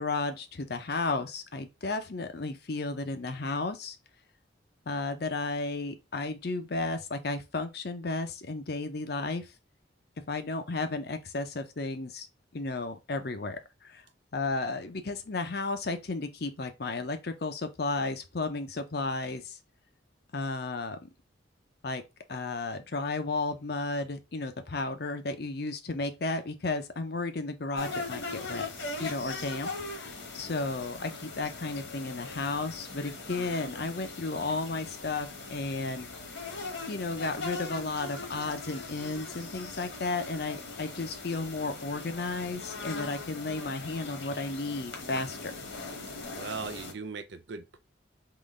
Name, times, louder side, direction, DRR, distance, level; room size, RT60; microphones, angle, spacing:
voice 1, 0.0-4.0 4.9-9.5 10.3-12.3 12.5-14.0 14.3-19.6 20.3-21.0 21.8-22.0 22.3-28.7 29.0-29.7 30.0-36.1 36.9-45.5, left 3 dB, 55° left, 0.7 m, -33 dB
sound 1, 27.7-46.9, left 3 dB, 75° left, 1.3 m, -40 dB
voice 2, 46.3-47.8, right 4 dB, 65° right, 0.5 m, -39 dB
3.8 x 3.1 x 3.6 m
head